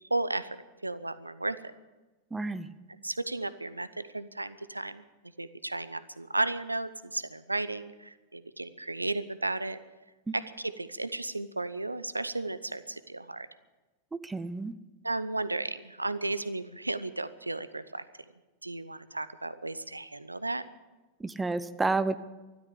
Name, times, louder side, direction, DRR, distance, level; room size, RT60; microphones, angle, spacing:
voice 1, 0.1-0.6 0.8-1.6 3.0-5.0 5.4-9.8 10.3-13.5 15.0-18.0 18.6-20.6, right 2 dB, 85° right, 15 dB, 0.6 m, -34 dB
voice 2, 2.3-2.7 10.3-10.4 14.1-14.8 21.2-22.2, right 3 dB, 10° right, 13 dB, 0.7 m, -30 dB
13.5 x 12.0 x 8.4 m, 1.2 s
figure-of-eight pair, 90°, 0 cm